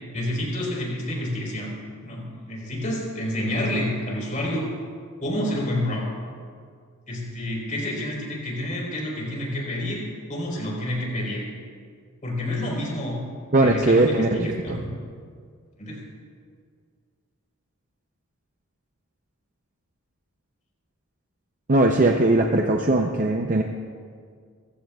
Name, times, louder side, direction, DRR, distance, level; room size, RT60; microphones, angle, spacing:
voice 1, 0.0-1.7 2.0-4.7 5.2-6.1 7.1-11.4 12.2-13.2 13.6-14.3 15.8-16.0, left 1 dB, 35° left, -2 dB, 4.2 m, -28 dB
voice 2, 13.5-14.8 21.7-23.6, right 2 dB, 35° right, 2 dB, 0.6 m, -20 dB
26.0 x 15.5 x 2.4 m, 2.1 s
head